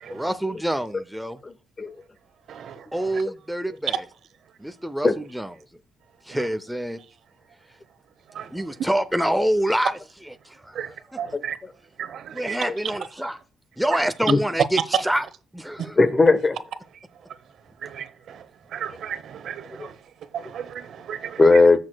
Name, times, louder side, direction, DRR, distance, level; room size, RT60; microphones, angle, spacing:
voice 1, 0.1-1.4 2.9-4.0 4.6-5.5 6.3-7.0 8.5-10.0 10.3-10.8 11.1-11.2 12.3-13.4 13.8-15.3 15.5-16.0, right 1 dB, ahead, 0.5 m, -26 dB
voice 2, 1.4-1.9 5.0-5.1 11.3-11.4 14.3-14.4 15.8-16.6 19.8-19.9 21.4-21.8, left 3 dB, 25° left, 0.8 m, -17 dB
voice 3, 2.5-3.2 6.3-6.4 8.3-8.5 10.7-10.9 11.2-11.6 12.0-12.6 17.8-18.4 18.7-19.9 20.3-21.4, right 8 dB, 70° right, 0.8 m, -35 dB
14.5 x 6.4 x 2.2 m
cardioid pair, 115°, 0 cm